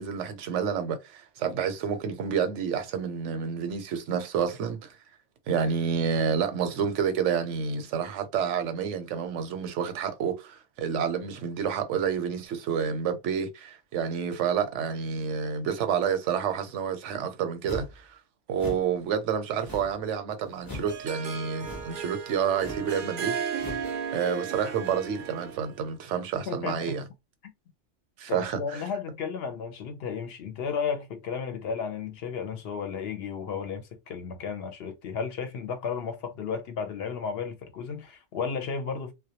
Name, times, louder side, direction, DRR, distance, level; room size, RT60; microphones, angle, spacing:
voice 1, 0.0-4.9 5.5-18.2 18.5-23.4 24.1-27.0 28.2-28.8, right 7 dB, 80° right, 0.9 m, -29 dB
sound 1, 17.6-18.0 18.5-18.9 19.6-20.0 20.6-21.0 21.6-22.0 22.6-22.9 23.6-23.9, left 2 dB, 30° left, 0.4 m, -40 dB
Harp, 20.5-25.8, right 7 dB, 60° right, 0.6 m, -35 dB
voice 2, 26.5-27.0 28.3-39.1, left 6 dB, 65° left, 0.7 m, -33 dB
2.2 x 2.1 x 2.7 m
omnidirectional pair, 1.2 m